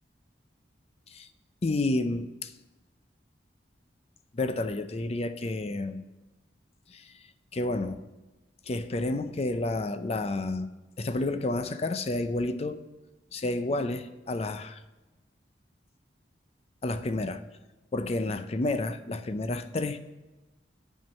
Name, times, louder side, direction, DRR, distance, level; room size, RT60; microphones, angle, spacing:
voice 1, 1.6-2.5 4.3-6.0 6.9-7.1 7.5-8.0 8.7-10.7 11.0-12.8 13.3-14.8 16.8-17.4 17.9-20.0, left 2 dB, 35° left, 10 dB, 0.5 m, -30 dB
9.2 x 4.5 x 7.1 m, 1.1 s
head